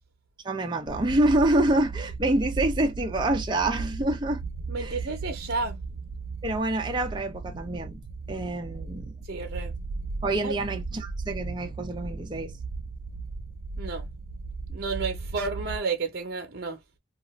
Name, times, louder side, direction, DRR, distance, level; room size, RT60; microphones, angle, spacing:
voice 1, 0.4-4.4 4.8-5.0 6.4-8.0 8.3-9.1 10.2-12.5, right 1 dB, 20° right, 0.5 m, -26 dB
sound 1, 0.9-15.8, right 3 dB, 85° right, 0.5 m, -36 dB
voice 2, 4.7-5.8 9.3-9.7 10.4-10.5 13.8-14.1 14.7-16.8, right 4 dB, 50° right, 0.7 m, -31 dB
2.5 x 2.4 x 2.9 m
head